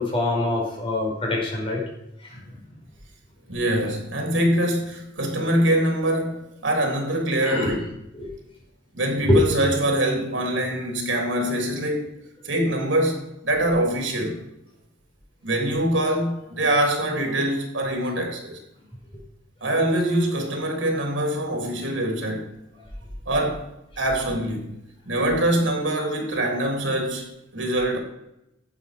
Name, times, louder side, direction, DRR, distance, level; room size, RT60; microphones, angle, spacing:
voice 1, 0.0-1.8 2.2-2.4 7.4-7.7 8.1-8.3 9.2-9.4, left 1 dB, 30° left, 5.0 m, -24 dB
voice 2, 3.5-7.9 8.9-12.1 12.4-14.4 15.4-18.6 19.6-22.5 23.2-23.7 24.0-24.7 25.0-28.0, right 1 dB, 80° right, 3.5 m, -24 dB
12.0 x 8.6 x 5.2 m
head